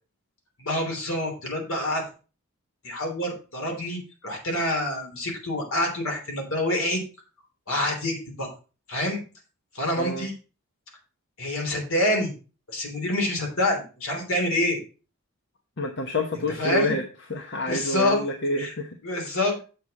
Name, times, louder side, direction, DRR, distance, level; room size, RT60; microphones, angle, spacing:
voice 1, 0.6-2.0 2.8-7.0 7.7-8.5 8.9-9.2 9.7-10.3 11.4-12.3 12.7-14.8 16.6-17.0 17.6-18.2 18.5-18.7 19.0-19.6, left 1 dB, 75° left, 1 dB, 3.2 m, -26 dB
voice 2, 10.0-10.3 15.8-17.0 17.3-19.0, left 1 dB, 55° left, 4 dB, 1.0 m, -28 dB
8.0 x 6.7 x 4.2 m, 0.35 s
head